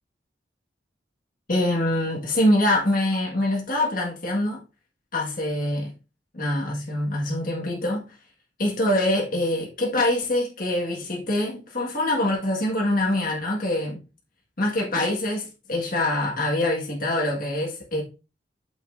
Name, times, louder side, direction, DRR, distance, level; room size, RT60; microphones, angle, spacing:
voice 1, 1.5-4.6 5.1-5.9 6.3-8.1 8.6-14.0 14.6-18.0, left 1 dB, 50° left, 1.7 m, -24 dB
8.7 x 7.2 x 2.6 m
head